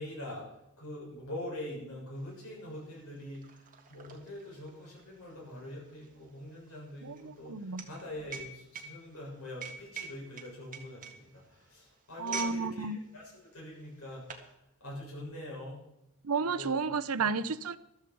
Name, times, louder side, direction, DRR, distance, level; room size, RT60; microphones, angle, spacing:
voice 1, 0.0-3.6 3.9-14.3 14.8-15.8 16.5-16.8 17.2-17.3, left 1 dB, 75° left, 7.1 m, -44 dB
sound 1, 2.3-2.4 2.7-12.6 12.9-13.2 13.8-14.5, right 6 dB, 35° right, 1.6 m, -45 dB
voice 2, 7.0-7.9 12.2-13.0 16.2-17.8, right 4 dB, 75° right, 0.7 m, -32 dB
14.0 x 13.0 x 4.7 m
head